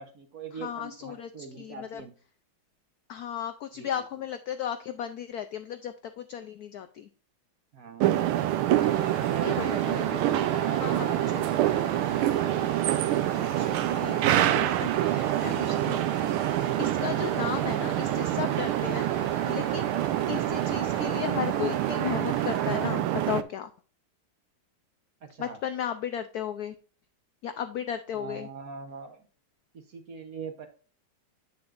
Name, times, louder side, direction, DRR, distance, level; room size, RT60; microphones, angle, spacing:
voice 1, 0.0-2.1 3.7-3.9 7.7-8.1 8.9-9.8 10.3-12.2 25.2-25.6 28.1-29.2 29.7-30.7, right 5 dB, 50° right, 6 dB, 1.2 m, -42 dB
voice 2, 0.5-2.0 3.1-7.1 9.4-10.4 10.7-11.1 11.3-11.4 13.6-14.2 14.4-16.0 16.3-19.1 19.5-19.9 20.3-23.7 25.4-26.8 27.4-28.5, left 9 dB, 85° left, 9 dB, 0.8 m, -35 dB
sound 1, 8.0-23.4, right 13 dB, 90° right, 1.5 m, -26 dB
sound 2, 8.7-22.9, left 5 dB, 45° left, 1.5 m, -46 dB
8.0 x 6.8 x 2.5 m, 0.39 s
omnidirectional pair, 2.3 m